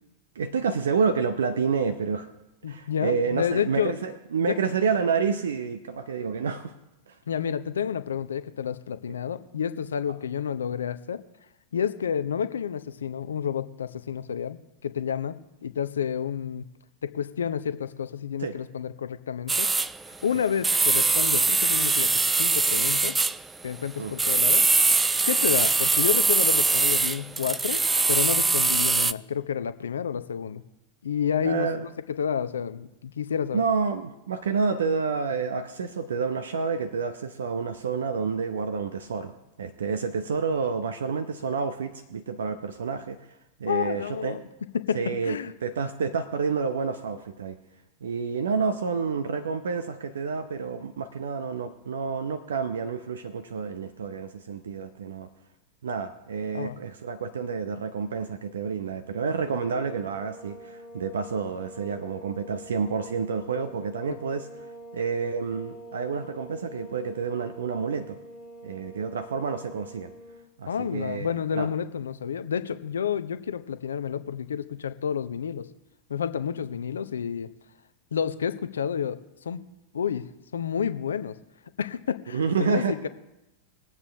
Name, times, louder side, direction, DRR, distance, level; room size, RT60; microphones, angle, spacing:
voice 1, 0.3-2.3 2.7-6.7 7.1-7.2 18.4-18.6 24.0-24.1 31.4-31.8 33.5-39.3 39.6-43.2 43.6-44.4 44.9-47.6 48.0-55.3 55.8-64.5 64.9-68.2 68.6-70.1 70.6-71.7 82.3-83.0, right 5 dB, 65° right, 10 dB, 0.8 m, -29 dB
voice 2, 2.6-3.9 7.3-11.2 11.7-16.7 17.0-19.7 20.2-23.2 23.6-24.6 25.2-27.8 28.1-30.6 31.0-33.6 43.7-44.4 44.7-45.5 56.5-56.8 64.1-64.2 70.7-75.7 76.1-77.5 78.1-79.2 79.4-79.6 79.9-80.3 80.5-81.4 81.8-83.1, left 8 dB, 70° left, 12 dB, 0.7 m, -30 dB
sound 1, 19.5-19.9 20.6-23.4 24.2-29.1, right 3 dB, 10° right, 0.4 m, -22 dB
sound 2, 59.4-70.5, right 1 dB, 35° right, 2.8 m, -45 dB
21.5 x 8.3 x 3.4 m, 0.94 s
figure-of-eight pair, 90°, 0 cm